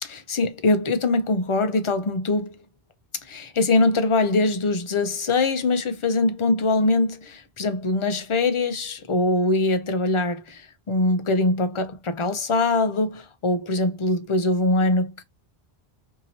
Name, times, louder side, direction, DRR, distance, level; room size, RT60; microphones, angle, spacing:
voice 1, 0.0-2.6 3.2-15.2, left 2 dB, 50° left, 0.4 m, -23 dB
2.8 x 2.7 x 2.7 m
omnidirectional pair, 1.0 m